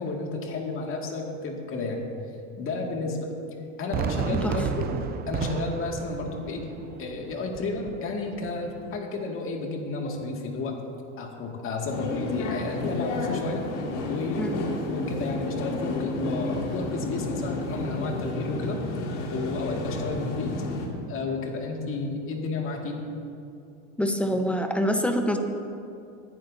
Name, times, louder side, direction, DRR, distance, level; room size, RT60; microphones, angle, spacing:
voice 1, 0.0-2.1 2.6-3.3 3.8-6.7 7.0-10.8 11.2-13.7 14.1-14.6 14.9-18.8 19.3-20.6 21.1-23.0, left 3 dB, 35° left, 0 dB, 2.1 m, -32 dB
Fireworks, 3.9-9.0, right 7 dB, 25° right, 0.5 m, -33 dB
sound 1, 11.9-20.9, left 2 dB, 70° left, 2.3 m, -31 dB
voice 2, 14.4-14.7 24.0-25.4, equal, 5° left, 4 dB, 0.9 m, -26 dB
20.5 x 10.5 x 2.7 m, 2.6 s
supercardioid pair, 125°, 37 cm